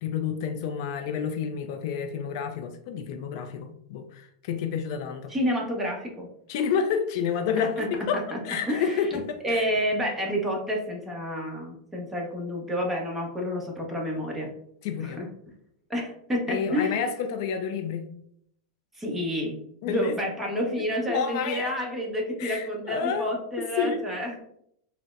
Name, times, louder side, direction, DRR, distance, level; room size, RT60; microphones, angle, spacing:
voice 1, 0.0-5.3 6.5-9.7 14.8-15.2 16.5-18.1 19.8-20.2 21.1-21.7 22.4-23.3 23.8-24.0, left 7 dB, 60° left, 6 dB, 0.4 m, -29 dB
voice 2, 5.3-6.3 7.6-7.9 8.1-8.4 8.7-9.2 9.4-14.5 15.0-15.3 15.9-17.0 18.9-19.5 19.9-24.5, equal, 10° right, -1 dB, 0.9 m, -29 dB
4.0 x 2.0 x 2.4 m, 0.71 s
hypercardioid pair, 130°, 2 cm